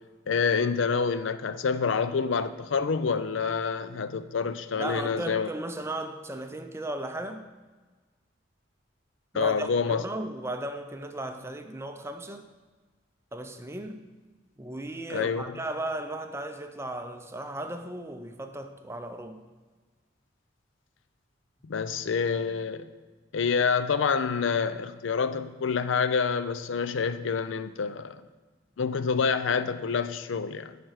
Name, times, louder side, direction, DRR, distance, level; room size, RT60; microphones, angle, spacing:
voice 1, 0.3-5.5 9.3-10.0 15.1-15.6 21.6-22.9 23.3-28.2 28.8-30.8, left 5 dB, 70° left, 0.5 m, -27 dB
voice 2, 4.8-7.5 9.3-12.5 13.3-14.0 14.6-19.4, right 1 dB, 15° right, 0.5 m, -36 dB
10.5 x 5.0 x 4.8 m
head